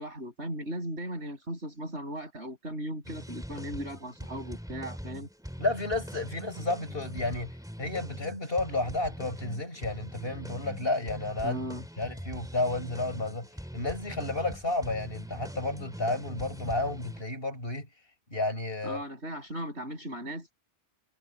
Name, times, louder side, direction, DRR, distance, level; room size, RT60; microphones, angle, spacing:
voice 1, 0.0-5.3 11.4-11.8 18.8-20.5, equal, 85° right, 7.1 m, -37 dB
sound 1, 3.0-17.2, equal, 5° right, 2.4 m, -42 dB
voice 2, 5.6-11.6 12.0-13.5 13.7-17.9 18.3-19.0, left 2 dB, 60° left, 6.9 m, -31 dB
omnidirectional pair, 1.1 m